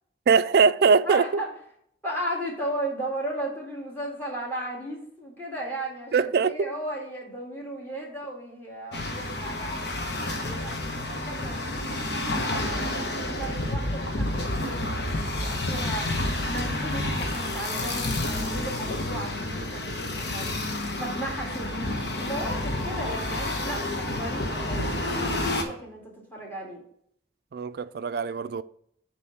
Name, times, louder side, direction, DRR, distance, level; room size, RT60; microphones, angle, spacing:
voice 1, 0.3-1.2 6.1-6.7 27.5-28.6, right 5 dB, 60° right, 0.3 m, -21 dB
voice 2, 1.0-1.5 2.0-10.0 10.4-11.8 12.4-16.1 16.4-20.6 21.0-26.8, right 1 dB, 10° left, 2.0 m, -35 dB
sound 1, 8.9-25.6, left 1 dB, 65° left, 1.1 m, -29 dB
7.9 x 3.1 x 5.8 m
head